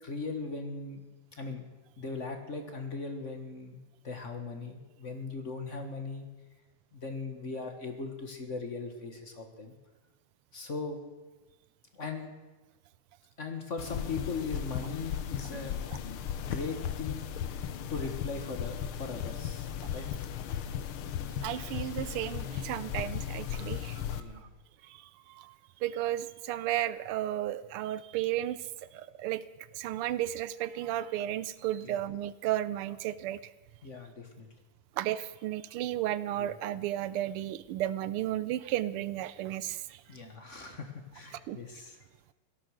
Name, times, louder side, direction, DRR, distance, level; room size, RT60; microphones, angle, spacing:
voice 1, 0.0-1.0 1.3-1.6 2.0-3.8 4.0-6.3 6.9-9.7 10.5-11.0 11.9-12.3 13.4-15.7 16.4-17.2 17.9-19.7 19.9-20.1 24.1-24.5 31.8-32.0 33.8-34.5 36.4-36.5 40.1-42.0, left 4 dB, 35° left, 5 dB, 1.7 m, -39 dB
sound 1, 13.8-24.2, left 9 dB, 75° left, 1.7 m, -36 dB
voice 2, 21.4-24.0 24.8-25.5 25.8-28.6 28.9-29.4 29.7-33.4 35.0-40.0 41.5-41.6, right 13 dB, 90° right, 16 dB, 1.6 m, -33 dB
17.5 x 12.5 x 6.5 m, 1.2 s
omnidirectional pair, 2.4 m